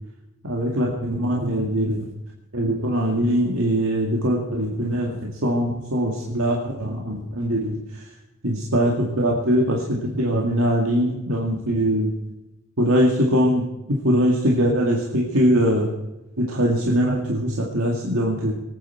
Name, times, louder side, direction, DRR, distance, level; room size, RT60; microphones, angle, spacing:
voice 1, 0.4-2.1 2.5-7.8 8.4-12.1 12.8-13.6 14.0-15.9 16.4-18.5, equal, 70° right, -2 dB, 2.1 m, -22 dB
24.0 x 9.5 x 4.6 m, 0.97 s
head